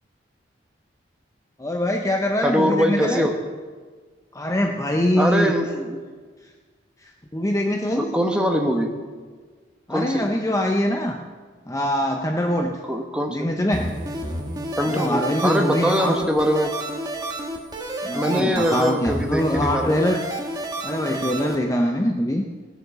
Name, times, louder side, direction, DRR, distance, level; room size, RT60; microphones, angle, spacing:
voice 1, 1.6-3.3 4.3-5.5 7.0-8.1 9.9-11.2 11.7-12.8 13.3-13.9 14.8-16.1 18.0-20.2 20.8-22.5, left 1 dB, 15° left, 3 dB, 0.7 m, -23 dB
voice 2, 2.4-3.3 5.1-6.0 7.9-8.9 9.9-10.3 12.9-13.5 14.8-16.7 18.1-20.0, equal, 5° right, 3 dB, 1.3 m, -22 dB
sound 1, 13.7-21.6, right 1 dB, 20° right, 1.5 m, -30 dB
18.0 x 7.9 x 6.8 m, 1.5 s
head